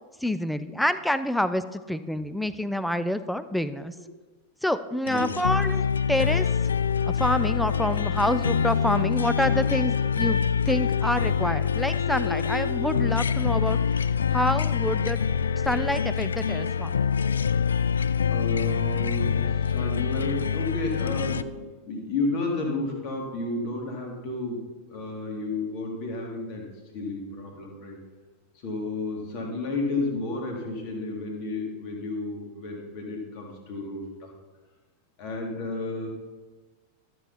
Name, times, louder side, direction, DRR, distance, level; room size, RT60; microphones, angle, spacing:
voice 1, 0.2-3.9 4.6-5.8 6.1-6.5 7.0-10.4 10.7-13.8 14.3-15.2 15.6-16.9, left 1 dB, ahead, 13 dB, 0.5 m, -27 dB
sound 1, 5.1-21.4, left 7 dB, 70° left, 0.3 m, -25 dB
voice 2, 5.1-5.6 18.3-26.7 26.9-28.0 28.6-34.3 35.2-36.1, left 2 dB, 45° left, 0 dB, 2.5 m, -32 dB
13.0 x 7.9 x 4.1 m, 1.3 s
figure-of-eight pair, 90°, 0 cm